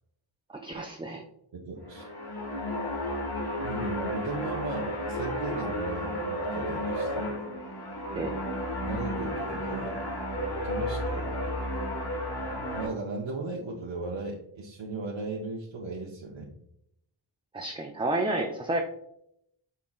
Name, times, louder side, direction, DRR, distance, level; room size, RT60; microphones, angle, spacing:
voice 1, 0.5-1.2 8.2-8.3 17.5-18.8, right 2 dB, 10° right, 2 dB, 0.3 m, -30 dB
voice 2, 1.5-2.1 3.6-7.3 8.1-8.3 8.8-10.0 10.6-11.3 12.7-16.5, right 3 dB, 65° right, -1 dB, 0.7 m, -37 dB
sound 1, 1.8-12.9, equal, 50° left, 1.3 m, -32 dB
5.5 x 3.7 x 2.3 m, 0.77 s
wide cardioid pair, 75°, 49 cm